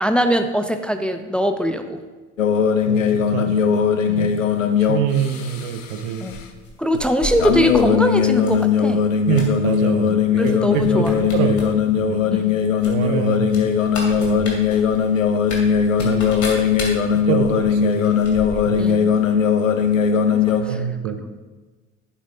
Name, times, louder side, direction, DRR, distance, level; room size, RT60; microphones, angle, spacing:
voice 1, 0.0-2.0 3.5-3.6 4.1-4.4 6.2-6.4 6.8-9.0 10.1-11.2 12.3-12.6 18.8-19.1 20.3-20.8, equal, 5° left, 7 dB, 0.6 m, -22 dB
sound 1, 2.4-5.9 7.4-20.6, left 7 dB, 85° left, 0.6 m, -19 dB
voice 2, 2.9-3.5 4.2-4.3 4.9-6.2 9.3-11.6 11.9-12.2 12.9-13.5 14.2-14.5 16.0-16.4 17.3-18.1 18.7-19.0 20.6-21.2, right 8 dB, 65° right, 9 dB, 0.8 m, -25 dB
sound 2, 6.3-7.9 8.4-8.7 9.0-9.8 10.4-10.5 10.8-11.7 12.0-12.1 12.8-18.9 19.2-19.3, left 2 dB, 50° left, 2.6 m, -34 dB
11.0 x 8.2 x 2.7 m, 1.3 s
figure-of-eight pair, 55°, 38 cm